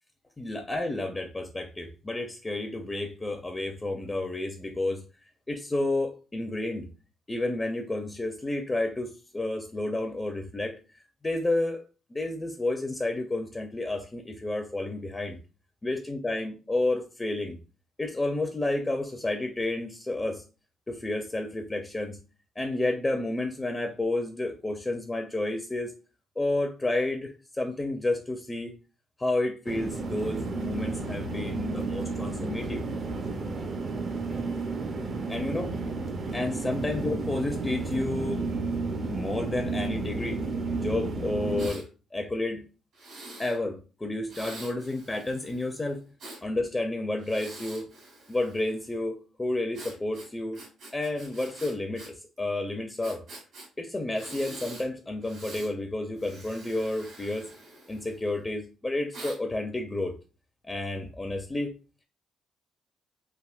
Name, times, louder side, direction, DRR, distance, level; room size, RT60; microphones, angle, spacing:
voice 1, 0.4-5.0 5.5-6.9 7.3-10.8 11.2-11.8 12.1-15.4 15.8-17.6 18.0-20.4 20.9-22.2 22.6-25.9 26.4-28.7 29.2-32.8 33.1-33.2 35.3-35.7 36.3-38.4 39.0-40.4 40.7-42.7 43.4-46.0 46.4-47.9 48.3-50.6 50.9-53.2 53.8-57.5 57.9-60.2 60.6-61.7, left 2 dB, 20° left, 4 dB, 0.5 m, -31 dB
sound 1, 29.7-41.7, right 3 dB, 45° right, 0.5 m, -32 dB
Breathing, 41.6-41.9 42.9-43.6 44.3-46.4 47.2-48.8 49.7-52.1 52.4-52.5 53.0-53.7 54.1-54.9 55.2-55.7 56.2-58.3 59.1-59.4, right 2 dB, 75° right, 1.6 m, -45 dB
3.4 x 2.4 x 2.4 m, 0.33 s
cardioid pair, 90°, 0 cm